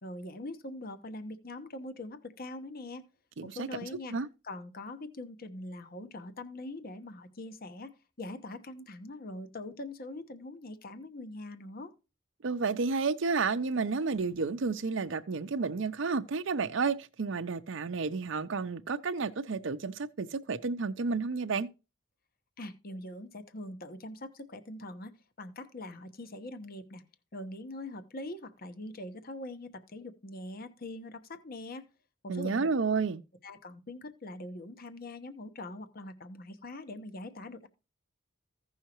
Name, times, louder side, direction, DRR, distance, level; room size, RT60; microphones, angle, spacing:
voice 1, 0.0-3.1 3.4-4.2 4.4-11.9 22.6-25.1 25.4-27.0 27.3-31.9 32.2-32.7 33.4-37.7, left 2 dB, 50° left, 1.0 m, -43 dB
voice 2, 3.4-4.3 12.4-21.7 32.3-33.2, right 4 dB, 70° right, 0.6 m, -31 dB
15.5 x 5.6 x 2.9 m
head